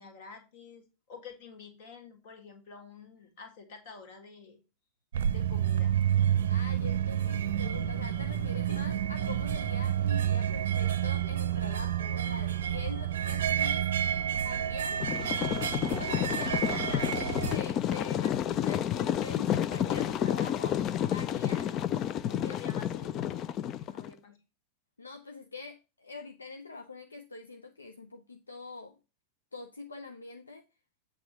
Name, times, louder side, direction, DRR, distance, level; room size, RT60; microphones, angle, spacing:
voice 1, 0.0-4.6 5.3-6.0 8.4-8.8 16.7-17.2 22.5-23.2 23.8-24.4, left 5 dB, 50° left, 2.0 m, -49 dB
sound 1, 5.1-17.6, right 9 dB, 60° right, 0.6 m, -29 dB
voice 2, 6.5-13.9 14.4-15.0 16.0-20.8 21.1-21.8 22.2-22.8 23.2-23.4 23.9-24.1 25.0-28.9 29.5-30.6, left 3 dB, 75° left, 0.6 m, -44 dB
sound 2, 15.0-24.1, left 10 dB, 35° left, 0.4 m, -30 dB
7.8 x 3.7 x 5.6 m
figure-of-eight pair, 90°, 0 cm